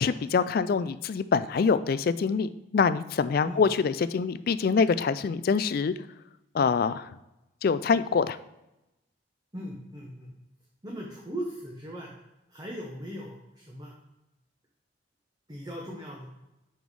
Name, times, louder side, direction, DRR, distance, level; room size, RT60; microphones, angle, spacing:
voice 1, 0.0-5.9 6.5-7.1 7.6-8.4, left 5 dB, 50° left, 14 dB, 0.3 m, -25 dB
voice 2, 9.5-10.3 10.8-12.1 12.5-13.9 15.5-16.3, equal, 20° right, -2 dB, 0.9 m, -38 dB
6.1 x 5.4 x 4.7 m, 0.93 s
head